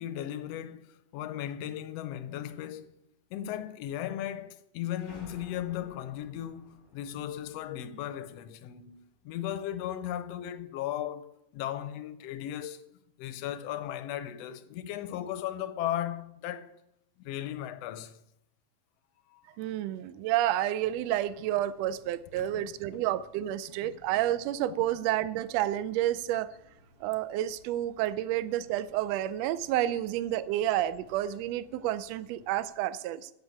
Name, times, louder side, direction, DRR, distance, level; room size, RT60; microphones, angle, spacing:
voice 1, 0.0-2.9 3.3-12.9 13.2-16.8 17.2-18.2 19.3-19.6 22.4-22.7 23.7-24.0 24.7-24.8, left 11 dB, 80° left, 1.5 m, -37 dB
sound 1, 5.0-9.4, left 2 dB, 35° left, 0.7 m, -55 dB
voice 2, 19.6-26.5 27.0-33.3, right 13 dB, 85° right, 1.5 m, -30 dB
sound 2, 20.8-32.6, equal, 65° right, 5.1 m, -60 dB
15.5 x 5.8 x 8.3 m
omnidirectional pair, 3.7 m